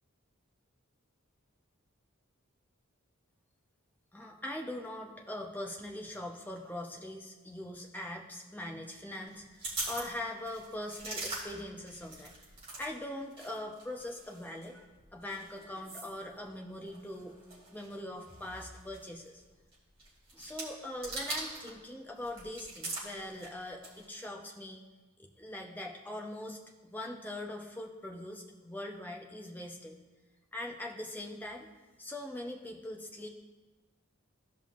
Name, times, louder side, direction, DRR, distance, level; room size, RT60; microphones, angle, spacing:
voice 1, 4.1-12.3 12.8-17.3 17.7-19.4 20.3-24.8 25.2-26.6 26.9-30.0 30.5-31.7 32.0-33.3, left 1 dB, 10° left, 1 dB, 0.7 m, -42 dB
sound 1, 9.3-12.9 13.2-21.8 22.1-24.2, right 2 dB, 25° right, 2.6 m, -43 dB
15.5 x 5.4 x 2.5 m, 1.2 s
head